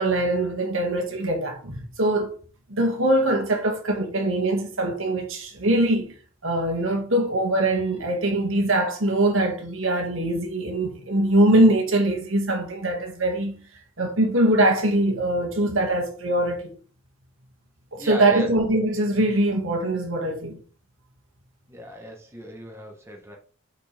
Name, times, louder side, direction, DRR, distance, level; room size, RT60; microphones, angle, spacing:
voice 1, 0.0-2.4 2.7-6.2 6.4-13.5 14.0-16.7 17.9-20.6, right 1 dB, 75° right, 2.0 m, -22 dB
voice 2, 18.0-18.5 21.7-23.4, equal, 15° right, 1.1 m, -36 dB
6.1 x 5.9 x 3.4 m
head